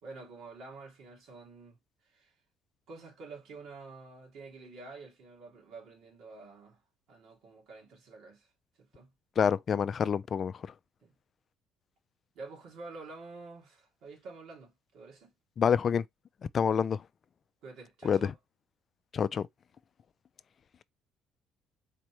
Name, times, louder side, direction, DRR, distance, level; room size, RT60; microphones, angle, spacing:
voice 1, 0.0-2.4 2.9-6.8 7.1-8.5 8.8-9.1 11.0-11.1 12.3-15.3 16.7-16.9 17.6-18.4, right 3 dB, 75° right, 2.3 m, -49 dB
voice 2, 9.4-10.5 15.6-16.0 16.5-17.0 18.0-18.3 19.1-19.5, left 7 dB, 45° left, 0.3 m, -27 dB
4.1 x 3.3 x 3.0 m
supercardioid pair, 85°, 0 cm